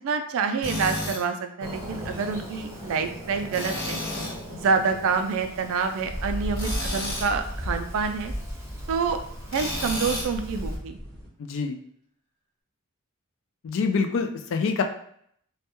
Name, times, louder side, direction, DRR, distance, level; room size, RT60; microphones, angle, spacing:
voice 1, 0.0-4.0 4.6-8.3 8.9-9.2 9.5-11.0, right 5 dB, 65° right, 7 dB, 0.3 m, -27 dB
Tools, 0.6-1.2 3.5-4.4 6.5-7.3 9.5-10.3, left 1 dB, 40° left, 1.0 m, -31 dB
Fireworks, 1.6-10.8, equal, 10° right, 0.5 m, -40 dB
sound 1, 6.0-11.3, equal, 5° left, 1.1 m, -35 dB
voice 2, 11.4-11.8 13.6-14.8, left 5 dB, 60° left, 5 dB, 0.3 m, -26 dB
2.2 x 2.1 x 2.9 m, 0.66 s
head